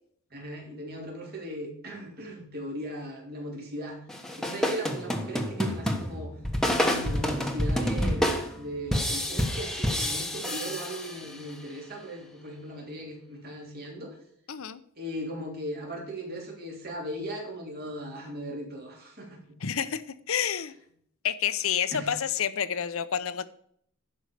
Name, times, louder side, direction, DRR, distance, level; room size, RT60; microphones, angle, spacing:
voice 1, 0.3-4.0 4.4-6.3 6.7-14.2 15.0-19.6 21.9-22.1, equal, 45° right, 0 dB, 3.2 m, -38 dB
sound 1, 4.1-11.5, equal, ahead, 1.2 m, -28 dB
voice 2, 14.5-14.8 19.6-20.7 21.2-23.5, left 8 dB, 70° left, 14 dB, 0.7 m, -29 dB
11.5 x 5.4 x 6.7 m, 0.66 s
head